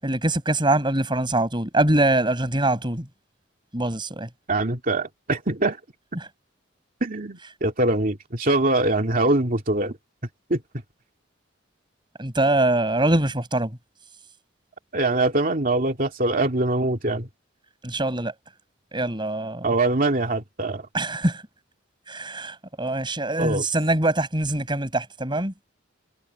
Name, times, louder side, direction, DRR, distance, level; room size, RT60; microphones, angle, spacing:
voice 1, 0.0-3.0 3.7-4.3 12.2-13.7 17.8-18.3 18.9-19.7 20.9-21.4 22.1-25.5, right 2 dB, 25° right, 6.3 m, -23 dB
voice 2, 4.5-5.8 7.0-10.0 10.5-10.6 14.9-17.3 19.6-20.8 23.4-23.7, right 2 dB, 45° right, 2.5 m, -23 dB
head